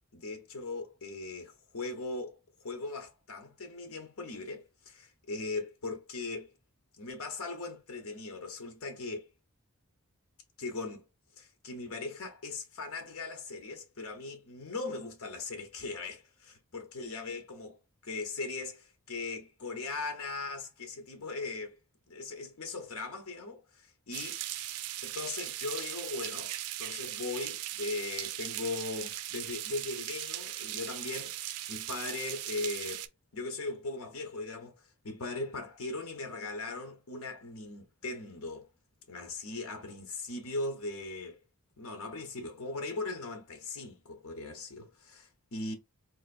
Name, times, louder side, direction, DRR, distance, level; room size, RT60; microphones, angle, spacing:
voice 1, 0.1-6.5 7.0-9.3 10.6-11.1 11.4-17.8 18.0-21.8 22.1-24.4 25.0-33.1 33.3-38.7 39.1-41.4 41.8-45.7, left 3 dB, 70° left, 0.8 m, -39 dB
sound 1, 24.1-33.1, right 13 dB, 85° right, 0.4 m, -39 dB
4.3 x 2.5 x 2.4 m
head